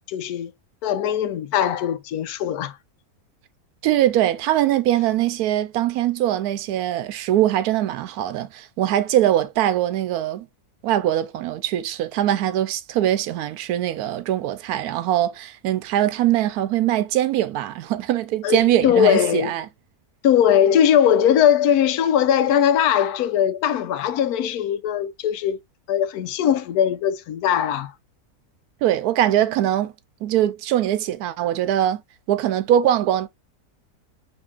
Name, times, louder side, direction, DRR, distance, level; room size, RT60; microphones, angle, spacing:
voice 1, 0.1-0.5 0.8-2.8 18.4-19.5 20.2-25.6 25.9-27.9, left 9 dB, 90° left, 1.1 m, -20 dB
voice 2, 3.8-10.4 10.8-19.6 28.8-29.9 30.2-32.0 32.3-33.3, right 12 dB, 85° right, 1.1 m, -22 dB
5.3 x 3.1 x 2.4 m
omnidirectional pair, 1.6 m